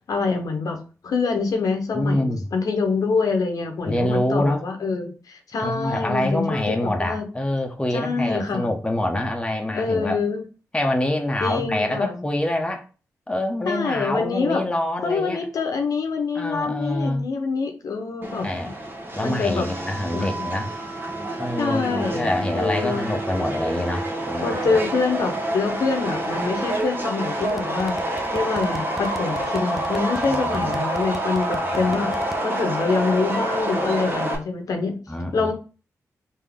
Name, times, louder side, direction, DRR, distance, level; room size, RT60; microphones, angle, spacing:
voice 1, 0.1-0.8 1.0-7.3 7.9-8.7 9.7-10.4 11.4-12.2 13.6-14.6 15.0-18.5 19.2-19.7 20.1-20.3 21.6-23.1 24.4-28.0 28.3-35.0 35.3-35.5, left 4 dB, 70° left, 0.8 m, -25 dB
voice 2, 1.9-2.4 3.9-4.6 5.6-10.2 10.7-12.8 13.3-15.4 16.3-17.3 18.2-18.7 19.2-20.7 21.4-24.8 30.2-30.8 31.7-32.0 35.1-35.5, left 1 dB, 15° left, 0.8 m, -26 dB
Subway metro underground, 18.2-34.4, right 1 dB, 35° right, 1.1 m, -28 dB
sound 1, 27.4-32.4, right 1 dB, 5° right, 0.4 m, -37 dB
3.6 x 2.8 x 3.4 m
cardioid pair, 55°, 6 cm